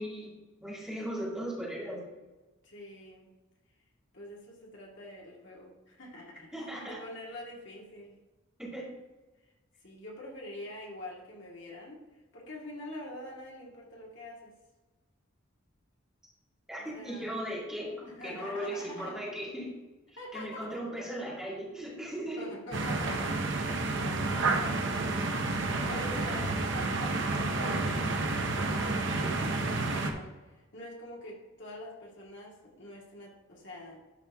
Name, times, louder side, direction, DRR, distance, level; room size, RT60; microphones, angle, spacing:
voice 1, 0.0-2.0 6.5-7.0 8.6-8.9 16.7-19.7 20.1-22.5, equal, 5° right, -6 dB, 2.2 m, -38 dB
voice 2, 2.6-3.3 4.1-8.2 9.8-14.5 16.8-17.5 18.2-19.2 20.2-20.7 22.4-25.3 25.6-28.4 28.9-34.0, left 1 dB, 60° left, -3 dB, 2.2 m, -45 dB
sound 1, 22.7-30.1, right 3 dB, 65° right, 1.1 m, -30 dB
12.5 x 4.3 x 3.6 m, 1.2 s
head